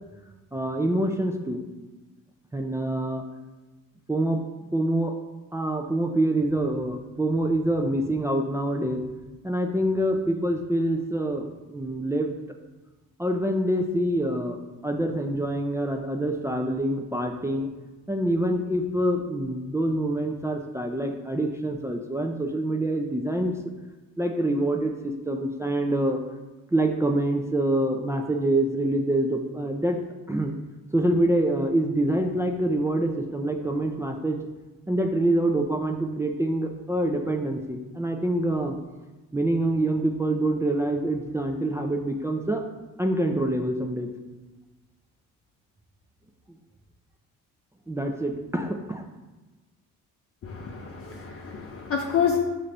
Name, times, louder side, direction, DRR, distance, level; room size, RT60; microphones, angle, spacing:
voice 1, 0.5-1.6 2.5-3.2 4.1-4.4 4.7-5.2 5.5-9.0 9.4-12.3 13.2-14.6 14.8-17.7 18.1-23.5 24.2-26.2 26.7-30.0 30.3-30.6 30.9-34.4 34.9-38.8 39.3-42.6 43.0-44.1 47.9-49.0, right 1 dB, 10° right, 2 dB, 0.4 m, -26 dB
voice 2, 50.4-52.4, left 7 dB, 45° left, 0 dB, 0.6 m, -28 dB
5.4 x 2.6 x 3.3 m, 1.2 s
supercardioid pair, 70°, 33 cm